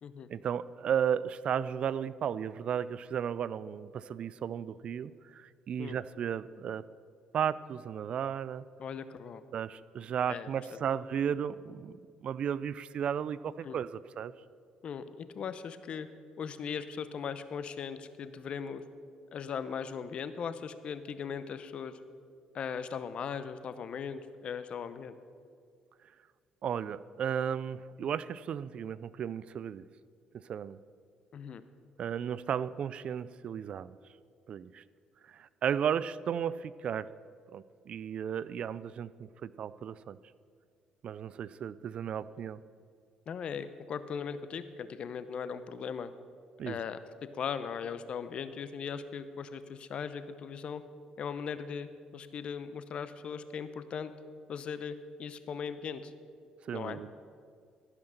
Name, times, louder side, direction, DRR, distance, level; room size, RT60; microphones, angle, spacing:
voice 1, 0.3-6.9 7.3-8.6 9.5-14.3 26.6-29.8 30.5-30.8 32.0-34.0 34.5-34.8 35.3-37.1 37.5-40.2 41.0-42.6 46.6-46.8 56.6-57.1, right 8 dB, 55° right, 18 dB, 0.3 m, -34 dB
voice 2, 8.8-9.4 10.3-10.8 13.6-13.8 14.8-16.1 16.4-18.8 19.3-22.0 22.5-25.2 31.3-31.6 43.3-46.1 46.6-47.0 47.3-50.8 51.2-54.1 54.5-56.1 56.7-57.0, left 6 dB, 55° left, 12 dB, 0.7 m, -39 dB
15.0 x 5.8 x 6.6 m, 2.2 s
supercardioid pair, 85°, 2 cm